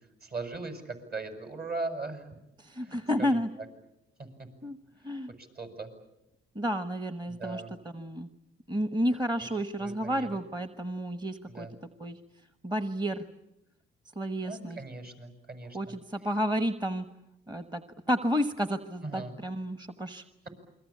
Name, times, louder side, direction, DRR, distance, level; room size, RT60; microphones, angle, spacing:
voice 1, 0.2-2.3 2.8-3.4 4.2-4.5 5.4-5.9 7.3-7.7 9.4-9.5 9.8-10.4 11.5-11.7 14.4-16.0 19.0-19.3, right 3 dB, 50° right, 7 dB, 7.0 m, -39 dB
voice 2, 2.6-3.5 4.6-4.8 5.0-5.3 6.5-7.6 7.9-8.3 8.7-11.7 12.0-12.2 12.6-13.3 14.2-14.8 15.7-17.1 17.5-17.8 18.1-20.2, equal, 20° right, 10 dB, 1.3 m, -31 dB
28.5 x 22.5 x 8.6 m, 0.87 s
cardioid pair, 90°, 20 cm